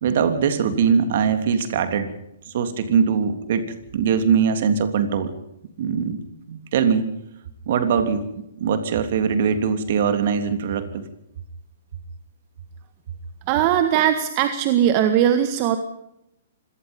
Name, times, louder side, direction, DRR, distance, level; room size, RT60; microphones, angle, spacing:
voice 1, 0.0-2.1 2.5-5.3 5.8-6.2 6.5-7.1 7.7-8.3 8.6-11.0, right 6 dB, 55° right, 9 dB, 3.2 m, -21 dB
voice 2, 13.5-15.8, right 10 dB, 40° right, 9 dB, 1.7 m, -19 dB
25.5 x 18.5 x 5.5 m, 0.83 s
hypercardioid pair, 130°, 0 cm